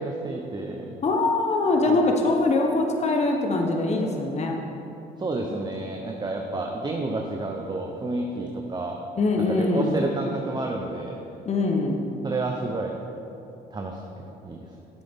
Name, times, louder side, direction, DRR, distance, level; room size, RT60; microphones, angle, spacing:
voice 1, 0.0-1.0 1.8-2.1 5.2-9.0 9.5-11.2 12.2-13.0 13.7-14.0 14.4-14.6, right 2 dB, 25° right, 1 dB, 0.8 m, -30 dB
voice 2, 1.0-4.6 9.2-10.0 11.4-12.0, left 2 dB, 35° left, 2 dB, 1.1 m, -23 dB
9.3 x 7.5 x 3.7 m, 2.8 s
supercardioid pair, 75°, 18 cm